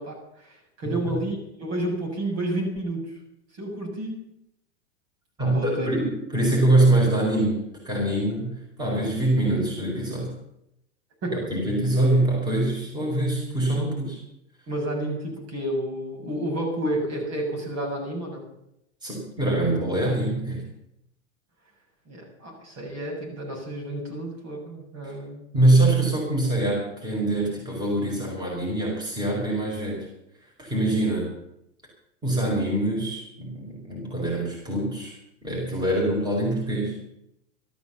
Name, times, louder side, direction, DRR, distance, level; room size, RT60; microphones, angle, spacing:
voice 1, 0.0-3.2 3.5-4.2 5.4-5.9 11.2-11.5 14.7-18.4 22.1-25.5, right 1 dB, 40° right, 0 dB, 7.0 m, -30 dB
voice 2, 5.4-10.3 11.3-14.2 19.0-20.7 25.0-25.1 25.5-30.1 30.6-31.3 32.2-35.2 35.4-37.0, right 1 dB, 10° right, -3 dB, 5.6 m, -24 dB
13.5 x 12.5 x 7.2 m, 0.79 s
supercardioid pair, 145°, 35 cm